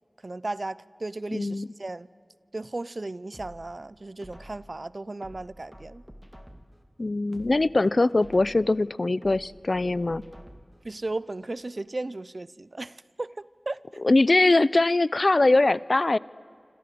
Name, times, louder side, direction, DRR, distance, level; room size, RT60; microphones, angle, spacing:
voice 1, 0.2-2.1 2.5-6.0 10.8-14.0, right 2 dB, 55° right, 0.7 m, -35 dB
voice 2, 1.3-1.7 7.0-10.2 14.0-16.2, left 2 dB, 55° left, 0.6 m, -22 dB
sound 1, 3.3-4.7 5.2-6.8 7.2-8.7 9.2-10.8 11.2-11.3, equal, 5° right, 2.5 m, -48 dB
28.5 x 26.5 x 7.8 m
wide cardioid pair, 55°, 0 cm